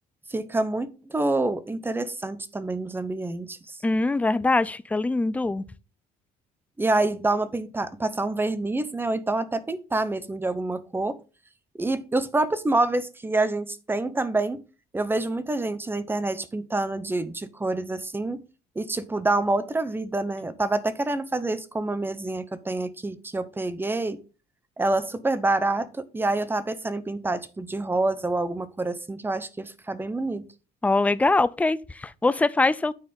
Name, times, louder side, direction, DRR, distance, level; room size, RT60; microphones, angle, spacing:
voice 1, 0.3-3.8 6.8-11.2 11.8-14.6 14.9-18.4 18.8-24.2 24.8-30.4, right 2 dB, 15° right, 0.8 m, -27 dB
voice 2, 3.8-5.6 30.8-32.9, left 3 dB, 10° left, 0.4 m, -23 dB
9.5 x 4.2 x 5.2 m
cardioid pair, 110°, 17 cm